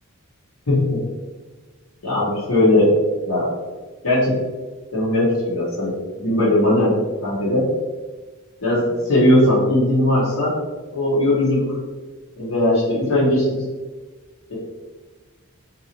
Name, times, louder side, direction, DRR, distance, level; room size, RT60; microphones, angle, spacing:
voice 1, 0.7-1.0 2.0-3.0 3.2-3.5 4.0-4.4 4.9-7.0 7.2-7.7 8.6-10.5 10.9-11.8 12.4-13.6, left 1 dB, 70° left, -8 dB, 1.1 m, -18 dB
3.9 x 2.7 x 2.9 m, 1.3 s
head